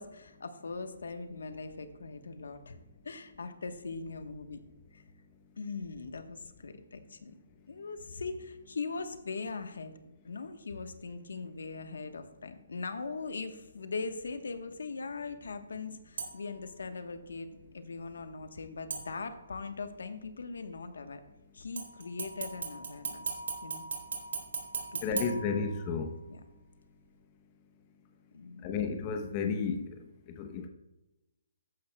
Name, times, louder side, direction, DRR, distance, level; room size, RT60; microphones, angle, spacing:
voice 1, 0.0-2.8 3.0-4.6 4.9-5.0 5.6-7.3 7.7-9.9 10.2-21.2 21.5-23.8 24.9-25.2 26.3-26.4 28.3-28.8, left 4 dB, 85° left, 8 dB, 1.1 m, -40 dB
sound 1, 16.2-16.6 18.9-19.6 21.8-26.1 26.6-26.7, right 5 dB, 80° right, 3.3 m, -39 dB
voice 2, 25.0-26.2 28.6-30.7, left 5 dB, 25° left, 5 dB, 0.8 m, -33 dB
13.5 x 9.9 x 2.3 m, 1.0 s
hypercardioid pair, 165°, 0 cm